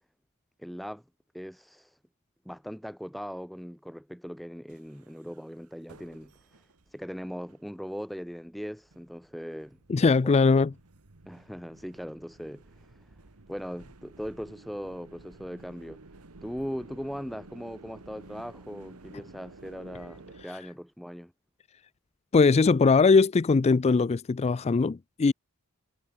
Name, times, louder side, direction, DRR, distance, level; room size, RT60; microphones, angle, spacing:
voice 1, 0.6-1.0 1.3-2.0 2.4-9.8 10.2-10.3 11.3-13.2 13.5-16.0 16.4-21.3, equal, ahead, 1.1 m, -39 dB
sound 1, 4.7-7.0 7.5-7.6 8.1-20.5, right 2 dB, 80° right, 1.5 m, -53 dB
voice 2, 9.9-10.7 22.3-25.3, left 4 dB, 30° left, 0.4 m, -21 dB
head